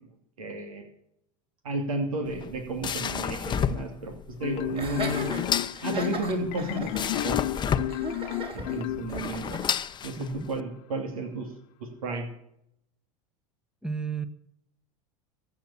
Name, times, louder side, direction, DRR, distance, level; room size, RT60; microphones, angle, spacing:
voice 1, 0.4-0.8 1.6-4.1 4.4-5.3 5.8-7.4 8.5-9.6 10.0-11.5 11.8-12.3, right 2 dB, 90° right, 5 dB, 2.8 m, -32 dB
sound 1, 2.2-10.6, left 8 dB, 25° left, 0.8 m, -32 dB
Marimba xylophone, 4.4-9.6, left 15 dB, 60° left, 0.7 m, -32 dB
Laughter, 4.7-9.7, right 2 dB, 30° right, 4.1 m, -37 dB
voice 2, 13.8-14.3, right 5 dB, 5° right, 12 dB, 1.2 m, -32 dB
15.0 x 9.0 x 7.3 m, 0.74 s
hypercardioid pair, 95°, 18 cm